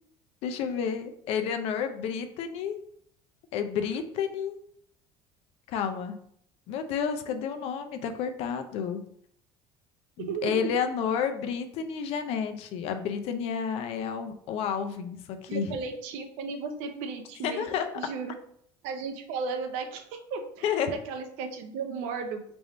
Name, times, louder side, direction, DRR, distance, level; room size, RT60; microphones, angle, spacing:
voice 1, 0.4-2.8 3.5-4.6 5.7-6.2 6.7-9.0 10.2-15.7 17.4-17.9 20.6-20.9, left 7 dB, 55° left, 7 dB, 0.5 m, -30 dB
voice 2, 10.2-10.8 15.5-17.7 17.9-18.4 18.8-22.4, right 5 dB, 75° right, 6 dB, 0.6 m, -35 dB
3.4 x 2.6 x 4.0 m, 0.66 s
cardioid pair, 165°, 12 cm